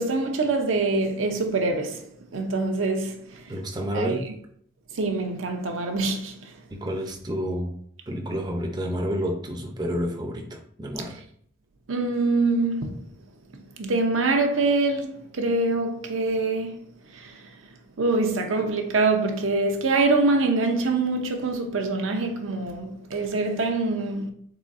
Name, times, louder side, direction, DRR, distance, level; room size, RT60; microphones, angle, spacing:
voice 1, 0.0-2.0 2.3-3.5 3.9-4.3 4.9-6.5 11.9-13.1 13.8-16.8 17.1-17.5 18.0-24.3, right 3 dB, 85° right, 0.7 m, -25 dB
voice 2, 3.5-4.2 6.7-7.7 8.1-11.2, equal, 20° right, 0.5 m, -29 dB
3.9 x 3.9 x 2.5 m
head